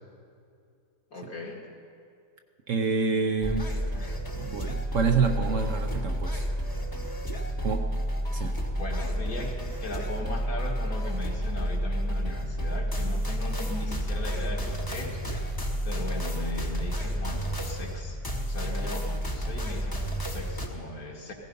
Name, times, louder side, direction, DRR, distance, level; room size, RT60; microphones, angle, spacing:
voice 1, 1.1-1.6 3.9-4.2 8.7-15.2 15.8-18.2 18.5-21.3, left 2 dB, 60° left, 0 dB, 2.2 m, -38 dB
voice 2, 2.7-3.7 4.4-6.5 7.6-7.9 8.3-8.6, right 5 dB, 60° right, 5 dB, 1.0 m, -27 dB
sound 1, 3.4-20.7, equal, 15° left, 1.0 m, -30 dB
16.0 x 15.0 x 5.4 m, 2.4 s
omnidirectional pair, 1.7 m